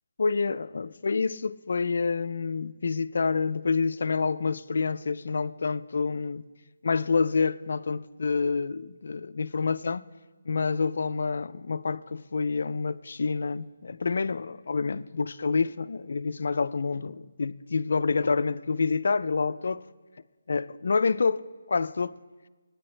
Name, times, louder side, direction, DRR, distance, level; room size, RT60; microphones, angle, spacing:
voice 1, 0.2-6.5 6.8-10.0 10.5-19.8 20.5-22.1, left 4 dB, 55° left, 0.4 m, -28 dB
24.0 x 9.5 x 3.3 m
hypercardioid pair, 175°, 0 cm